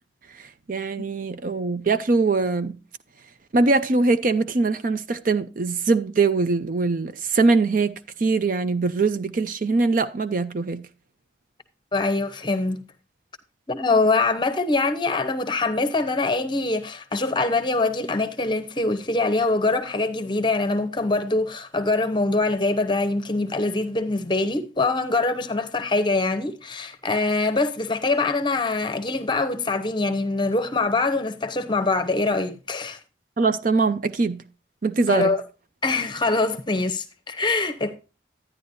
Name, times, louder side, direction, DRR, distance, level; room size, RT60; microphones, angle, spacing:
voice 1, 0.7-2.8 3.5-10.8 33.4-34.4 34.8-35.3, right 3 dB, 45° right, 0.5 m, -22 dB
voice 2, 11.9-12.8 13.7-33.0 35.1-35.4 35.8-37.9, left 3 dB, 25° left, 0.8 m, -24 dB
11.0 x 9.8 x 2.6 m
head